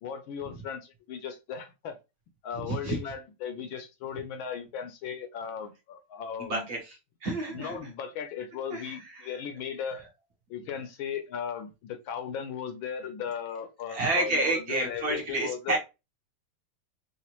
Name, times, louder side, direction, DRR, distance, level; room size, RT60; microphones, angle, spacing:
voice 1, 0.0-2.0 2.4-6.7 7.5-10.0 10.5-15.8, left 7 dB, 75° left, 1.3 m, -37 dB
voice 2, 2.7-3.0 6.4-7.0 7.2-7.8 8.7-9.3 13.9-15.8, right 2 dB, 50° right, 1.4 m, -29 dB
4.9 x 2.5 x 2.9 m
omnidirectional pair, 2.4 m